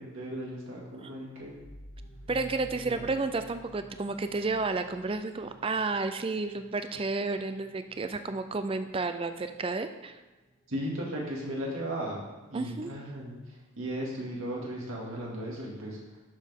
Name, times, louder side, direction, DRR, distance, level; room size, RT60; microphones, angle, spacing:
voice 1, 0.0-1.6 2.7-3.0 10.7-16.0, equal, 75° right, -3 dB, 2.4 m, -36 dB
sound 1, 1.3-10.7, equal, 60° left, 1.8 m, -52 dB
voice 2, 2.3-10.2 12.5-12.9, right 3 dB, 25° right, 9 dB, 0.4 m, -31 dB
11.5 x 6.6 x 3.6 m, 1.1 s
head